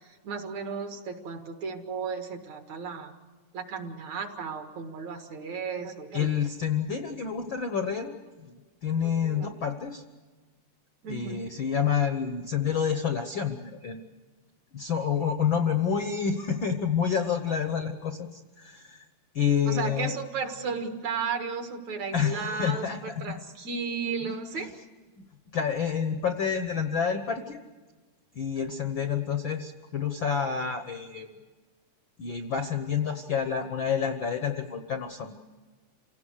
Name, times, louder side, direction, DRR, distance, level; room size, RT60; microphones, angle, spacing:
voice 1, 0.2-3.1 3.5-6.3 9.2-9.5 11.0-11.5 19.7-24.7, right 5 dB, 65° right, 5 dB, 2.9 m, -34 dB
voice 2, 6.1-8.1 8.4-10.0 11.1-14.0 14.7-19.1 19.3-20.1 22.1-23.4 24.2-24.7 25.5-27.6 28.3-31.3 32.2-35.3, left 7 dB, 65° left, 6 dB, 1.2 m, -28 dB
28.0 x 17.5 x 6.5 m, 1.3 s
omnidirectional pair, 3.6 m